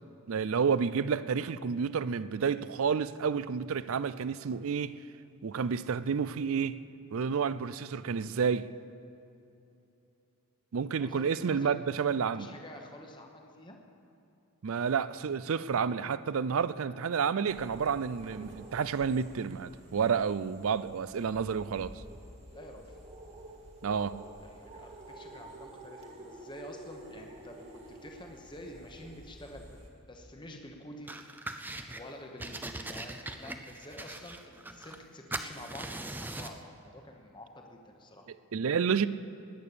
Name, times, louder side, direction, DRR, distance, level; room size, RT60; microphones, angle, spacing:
voice 1, 0.3-5.0 5.4-6.8 7.1-8.7 10.7-12.5 14.6-21.9 23.8-24.2 38.5-39.1, right 6 dB, 70° right, 0.4 m, -30 dB
voice 2, 10.9-11.8 12.2-13.8 22.5-23.0 24.4-29.7 30.1-31.2 31.9-38.3, left 1 dB, 20° left, 1.1 m, -48 dB
sound 1, 17.5-29.9, right 1 dB, 30° right, 1.8 m, -50 dB
sound 2, 31.1-32.0 32.4-35.1 35.3-36.6, right 2 dB, 10° right, 0.4 m, -40 dB
20.0 x 8.4 x 6.9 m
head